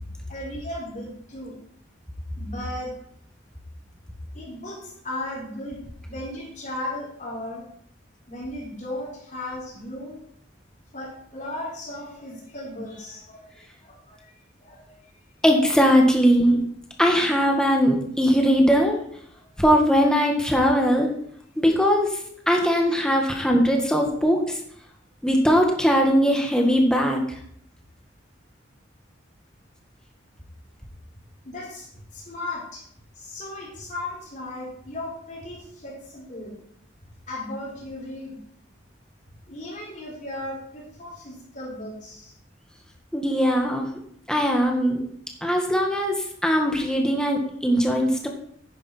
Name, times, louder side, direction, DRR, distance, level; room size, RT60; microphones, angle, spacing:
voice 1, 0.3-1.6 2.4-2.9 4.3-7.7 8.3-10.2 10.9-14.3 14.6-14.9 19.3-19.4 31.4-32.8 33.1-36.6 37.0-38.4 39.5-42.3, left 1 dB, 40° left, -3 dB, 3.6 m, -36 dB
voice 2, 15.4-16.6 17.0-19.0 19.6-21.1 21.6-22.2 22.5-24.6 25.2-27.2 43.1-43.9 44.3-45.0 45.4-48.3, equal, 5° left, 1 dB, 1.8 m, -20 dB
10.5 x 9.9 x 4.5 m, 0.66 s
head